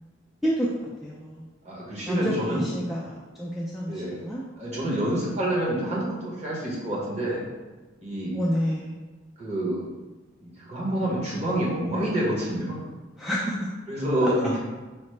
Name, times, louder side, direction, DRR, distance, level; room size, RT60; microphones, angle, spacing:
voice 1, 1.0-1.5 2.0-4.4 8.3-8.9 13.2-13.7 14.2-14.6, equal, ahead, -6 dB, 0.3 m, -29 dB
voice 2, 1.6-2.7 3.9-4.2 4.6-7.4 8.0-8.4 9.4-9.8 10.4-12.8 13.9-14.6, right 1 dB, 35° right, -6 dB, 1.1 m, -27 dB
4.9 x 2.1 x 3.2 m, 1.2 s
head